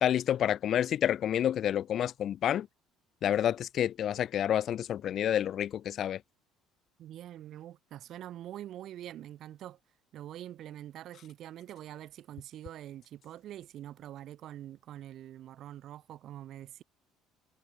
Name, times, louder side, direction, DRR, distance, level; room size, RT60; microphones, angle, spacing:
voice 1, 0.0-2.7 3.2-6.2, left 10 dB, 45° left, 0.7 m, -29 dB
voice 2, 7.0-9.8 10.1-16.8, right 12 dB, 55° right, 5.6 m, -45 dB
cardioid pair, 135°, 0 cm